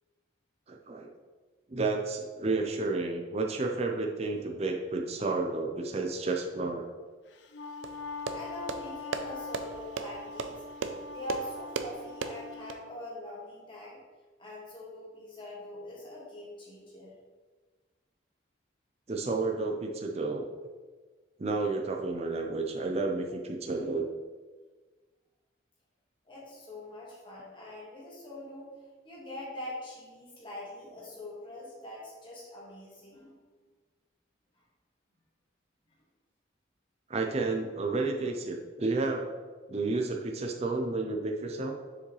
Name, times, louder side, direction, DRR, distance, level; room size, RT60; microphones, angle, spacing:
voice 1, 0.7-1.1 1.7-6.9 19.1-20.5 21.4-24.1 37.1-39.3 39.7-41.8, right 3 dB, 35° right, 2 dB, 0.5 m, -31 dB
Wind instrument woodwind instrument, 7.3-12.8, left 4 dB, 65° left, 0.4 m, -43 dB
sound 1, 7.8-12.8, right 5 dB, 85° right, 0.5 m, -37 dB
voice 2, 8.3-10.6 11.1-14.0 14.4-17.2 26.3-28.7 29.0-33.4 34.5-34.6, left 1 dB, 25° left, -6 dB, 1.8 m, -43 dB
6.8 x 4.8 x 3.1 m, 1.4 s
head